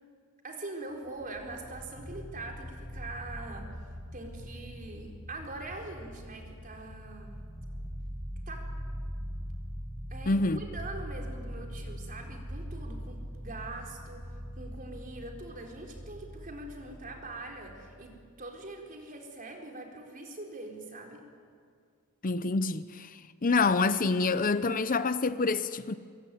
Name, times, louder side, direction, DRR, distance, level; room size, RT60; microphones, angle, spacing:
voice 1, 0.4-3.7 4.1-7.4 8.5-8.7 10.1-21.2, right 2 dB, 40° right, 4.3 m, -43 dB
sound 1, 1.0-18.4, equal, 20° right, 3.8 m, -42 dB
voice 2, 10.3-10.6 22.2-25.9, left 3 dB, 40° left, 0.7 m, -27 dB
25.5 x 22.0 x 9.4 m
head